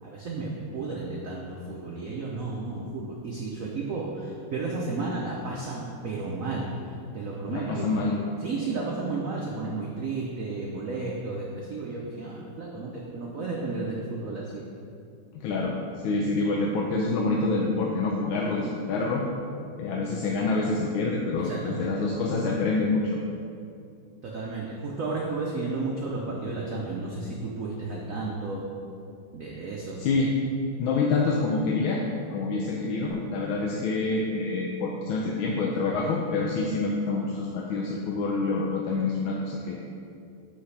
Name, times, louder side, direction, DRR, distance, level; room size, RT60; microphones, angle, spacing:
voice 1, 0.0-6.7 7.1-8.0 8.4-14.7 21.4-22.1 24.2-28.6 29.3-30.1 33.7-33.9, right 3 dB, 85° right, -2 dB, 0.7 m, -33 dB
voice 2, 7.5-8.2 15.4-15.8 16.0-19.2 19.8-23.2 30.0-30.3 30.8-32.0 32.3-39.8, left 3 dB, 75° left, -1 dB, 1.4 m, -27 dB
8.1 x 5.8 x 3.3 m, 2.5 s
omnidirectional pair, 2.4 m